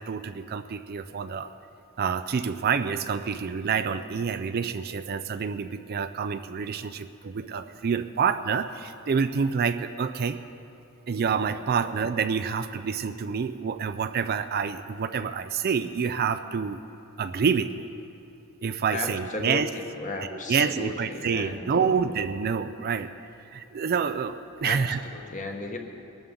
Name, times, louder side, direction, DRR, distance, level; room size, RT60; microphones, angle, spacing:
voice 1, 0.0-1.5 2.0-10.4 11.1-16.8 17.2-17.9 18.6-19.7 20.3-23.1 23.5-25.0, right 6 dB, 45° right, 10 dB, 0.4 m, -27 dB
voice 2, 18.9-19.6 19.9-22.0 24.6-25.8, left 2 dB, 35° left, 2 dB, 1.3 m, -35 dB
21.5 x 12.5 x 3.8 m, 2.6 s
head